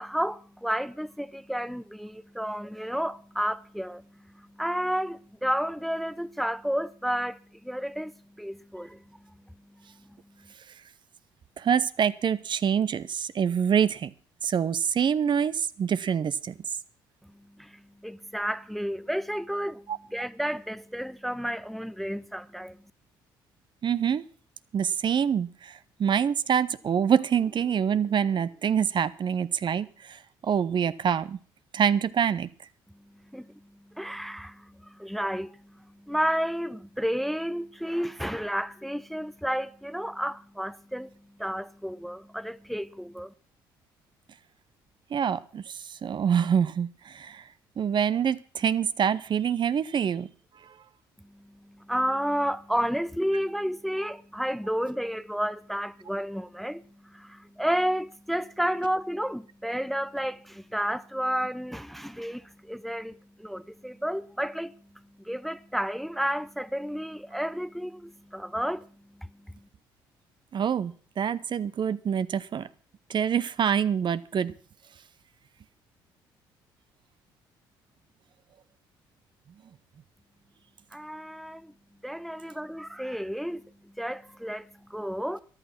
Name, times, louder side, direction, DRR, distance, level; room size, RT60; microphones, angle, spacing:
voice 1, 0.0-4.0 4.3-7.4 7.6-9.2 17.6-19.8 20.1-22.8 33.3-33.6 33.9-41.1 41.4-43.3 51.3-64.7 65.3-68.9 69.2-69.3 80.9-81.7 82.0-85.4, equal, ahead, 0.6 m, -31 dB
voice 2, 11.6-14.1 14.4-16.6 19.9-20.0 23.8-24.2 24.7-31.4 31.7-32.5 45.1-47.5 47.8-50.3 50.6-50.7 70.5-72.7 73.1-74.5, right 8 dB, 45° right, 0.8 m, -26 dB
14.0 x 11.0 x 5.9 m
hypercardioid pair, 55°, 11 cm